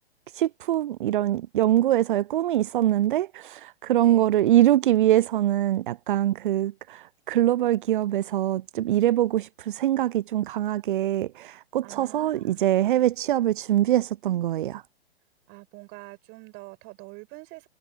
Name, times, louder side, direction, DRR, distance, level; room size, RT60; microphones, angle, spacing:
voice 1, 0.3-14.8, right 13 dB, 50° right, 0.5 m, -23 dB
voice 2, 4.0-4.3 11.8-12.7 15.5-17.7, right 27 dB, 30° right, 5.7 m, -45 dB
figure-of-eight pair, 125°, 32 cm